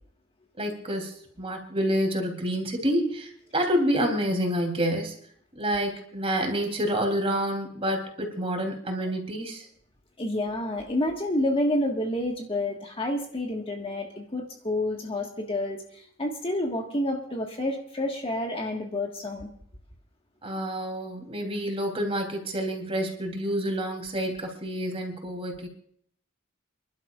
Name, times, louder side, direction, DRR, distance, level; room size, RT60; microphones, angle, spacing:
voice 1, 0.6-5.1 5.6-9.7 20.4-25.7, equal, 30° right, 3 dB, 3.3 m, -28 dB
voice 2, 10.2-19.5, left 1 dB, 30° left, 2 dB, 1.6 m, -29 dB
29.0 x 12.0 x 2.5 m, 0.62 s
head